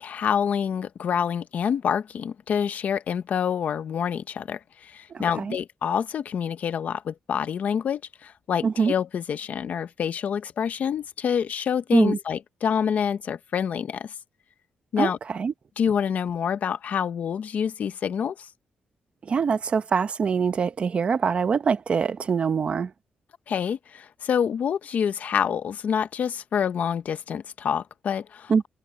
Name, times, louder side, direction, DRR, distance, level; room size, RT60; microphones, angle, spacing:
voice 1, 0.0-14.1 14.9-15.2 15.8-18.3 23.5-28.7, left 7 dB, 55° left, 0.9 m, -27 dB
voice 2, 5.1-5.6 8.6-8.9 11.9-12.2 15.0-15.5 19.3-22.9 28.5-28.7, right 6 dB, 40° right, 0.9 m, -24 dB
wide cardioid pair, 160°, 3 cm